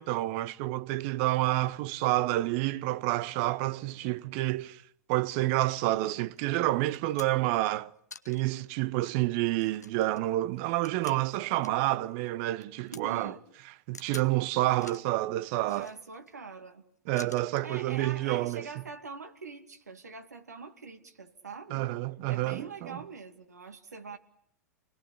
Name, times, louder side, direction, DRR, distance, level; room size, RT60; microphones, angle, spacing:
voice 1, 0.0-4.8 5.1-7.9 8.3-13.3 13.9-15.9 17.1-18.7 21.7-23.0, right 17 dB, 50° right, 1.0 m, -29 dB
sound 1, 6.4-6.5 6.9-7.6 8.1-8.6 9.0-9.1 9.5-11.9 12.2-13.0 13.9-14.3 14.7-15.1 15.6-16.3 17.2-17.7 18.8-18.9, left 4 dB, 90° left, 1.1 m, -49 dB
voice 2, 12.8-13.4 15.6-16.8 17.6-21.9 22.3-24.2, right 4 dB, 85° right, 2.5 m, -44 dB
29.0 x 20.5 x 8.5 m
figure-of-eight pair, 95°, 9 cm